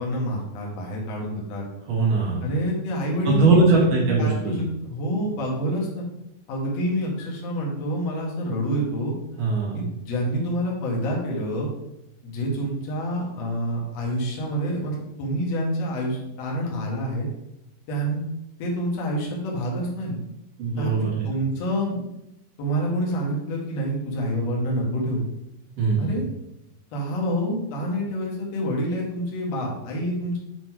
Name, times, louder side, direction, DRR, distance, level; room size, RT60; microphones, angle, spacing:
voice 1, 0.0-1.6 2.4-6.0 6.5-9.1 9.7-11.7 12.2-17.3 17.9-18.2 18.6-20.2 20.8-20.9 21.2-22.0 22.6-25.2 26.0-26.2 26.9-30.4, equal, 55° left, -3 dB, 2.4 m, -27 dB
voice 2, 1.9-2.4 3.2-4.6 9.4-9.8 20.6-21.2 25.8-26.1, right 3 dB, 60° right, -4 dB, 3.3 m, -21 dB
7.9 x 4.2 x 4.5 m, 0.86 s
omnidirectional pair, 4.2 m